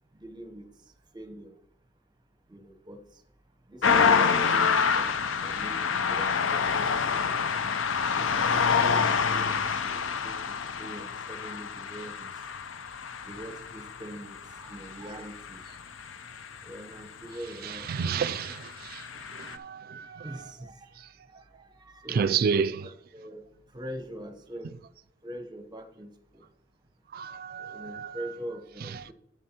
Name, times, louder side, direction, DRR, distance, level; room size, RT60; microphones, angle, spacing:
voice 1, 0.1-1.6 2.5-3.2 3.7-7.6 8.1-12.4 12.9-15.6 16.6-18.4 20.0-23.4 23.7-24.7 25.2-26.4 27.6-29.1, right 1 dB, 20° right, 0.8 m, -43 dB
sound 1, 3.8-17.0 18.0-19.6, left 6 dB, 85° left, 0.6 m, -27 dB
voice 2, 17.6-18.6 18.8-19.1 19.3-20.3 22.1-22.8 27.1-28.2, right 6 dB, 50° right, 0.3 m, -30 dB
11.0 x 8.3 x 2.9 m
head